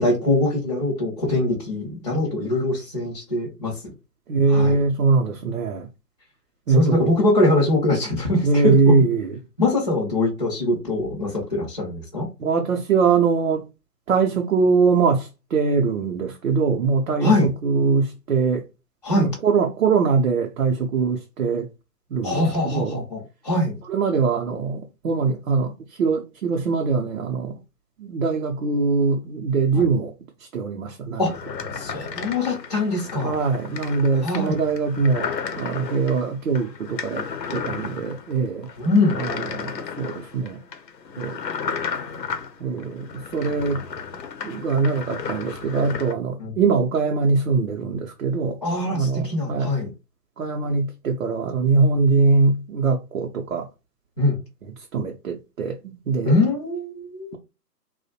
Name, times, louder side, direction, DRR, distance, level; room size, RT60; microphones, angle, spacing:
voice 1, 0.0-3.8 4.5-4.8 6.7-9.0 9.6-12.3 17.2-17.5 19.0-19.3 22.2-23.8 29.7-29.8 31.2-31.3 31.7-33.4 34.2-34.6 38.8-39.2 46.4-46.5 48.6-49.9 54.2-54.4 56.2-57.4, left 2 dB, 25° left, 0.5 m, -23 dB
voice 2, 4.3-5.9 6.7-7.1 8.4-9.3 12.4-13.7 14.1-18.6 19.1-21.7 22.1-23.0 23.9-25.7 26.0-27.6 28.0-30.1 30.5-31.2 33.2-35.3 35.6-37.3 37.5-38.7 39.2-40.6 41.2-41.4 42.6-43.8 44.4-48.6 48.9-49.7 50.4-53.7 54.9-55.8 56.1-56.3, right 4 dB, 55° right, 0.6 m, -22 dB
sound 1, 31.3-46.1, left 6 dB, 85° left, 0.7 m, -33 dB
2.5 x 2.1 x 2.7 m
figure-of-eight pair, 145°, 48 cm